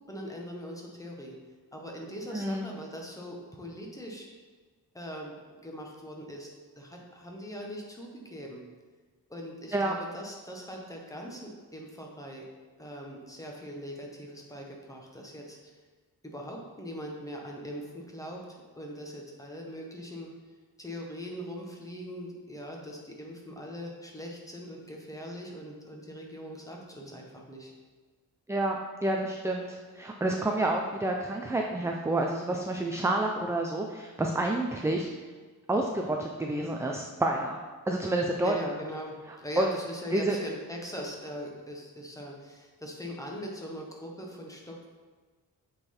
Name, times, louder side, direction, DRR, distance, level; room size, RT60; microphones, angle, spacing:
voice 1, 0.1-1.3 1.7-4.3 4.9-5.3 5.6-6.5 6.8-8.6 9.3-12.5 12.8-15.7 16.2-18.4 18.8-20.3 20.8-27.7 38.4-44.9, equal, 10° left, -1 dB, 1.1 m, -41 dB
voice 2, 2.3-2.7 9.7-9.9 28.5-35.1 35.7-37.6 37.9-38.6 39.6-39.7 40.1-40.4, right 2 dB, 10° right, 1 dB, 0.3 m, -29 dB
7.9 x 3.9 x 4.2 m, 1.4 s
wide cardioid pair, 140°, 38 cm